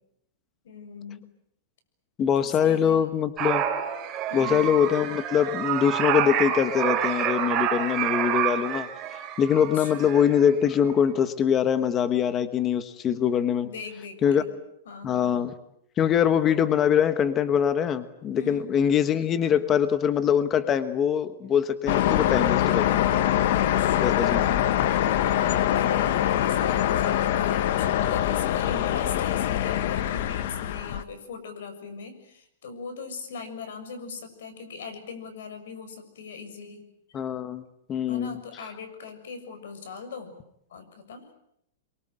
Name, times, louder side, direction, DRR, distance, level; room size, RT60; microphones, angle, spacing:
voice 1, 0.6-1.3 2.4-3.1 4.3-4.8 9.7-10.3 13.6-14.5 14.9-15.4 18.3-18.7 23.6-24.5 25.3-36.8 38.1-40.4 40.7-41.3, left 5 dB, 75° left, 9 dB, 6.9 m, -40 dB
voice 2, 2.2-3.6 4.3-8.9 9.4-13.7 14.2-14.4 15.0-15.5 16.0-23.1 24.0-24.6 37.1-37.6 37.9-38.4, left 8 dB, 20° left, 12 dB, 1.2 m, -23 dB
sound 1, 3.4-10.5 10.7-10.9, right 10 dB, 20° right, 3.2 m, -28 dB
sound 2, 21.9-31.0, left 11 dB, 50° left, 1.3 m, -24 dB
27.0 x 23.5 x 9.0 m, 0.76 s
supercardioid pair, 170°, 0 cm